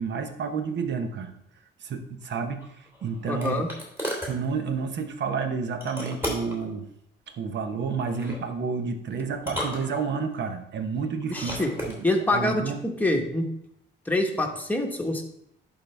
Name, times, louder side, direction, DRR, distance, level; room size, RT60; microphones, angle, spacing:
voice 1, 0.0-1.3 1.8-3.6 4.3-6.9 7.3-12.0 12.3-12.8, right 5 dB, 65° right, 7 dB, 1.0 m, -30 dB
sound 1, 2.6-4.4 5.8-6.6 8.0-8.4 9.3-10.4 11.2-12.0, equal, 10° right, 3.0 m, -34 dB
voice 2, 3.3-3.7 11.3-11.7 12.0-13.5 14.1-15.2, left 1 dB, 10° left, 2 dB, 1.2 m, -25 dB
11.0 x 4.0 x 3.4 m, 0.73 s
cardioid pair, 90°, 20 cm